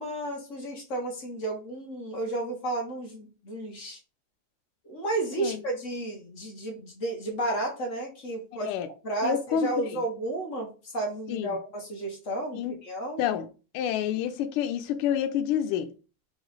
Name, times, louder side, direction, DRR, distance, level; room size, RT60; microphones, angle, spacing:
voice 1, 0.0-4.0 4.8-8.7 9.0-13.2, right 2 dB, 50° left, 0.9 m, -32 dB
voice 2, 8.5-8.9 9.2-10.0 11.3-11.6 12.5-12.8 13.2-13.5 13.7-15.9, left 9 dB, 85° left, 1.5 m, -28 dB
4.2 x 3.1 x 3.9 m
omnidirectional pair, 2.4 m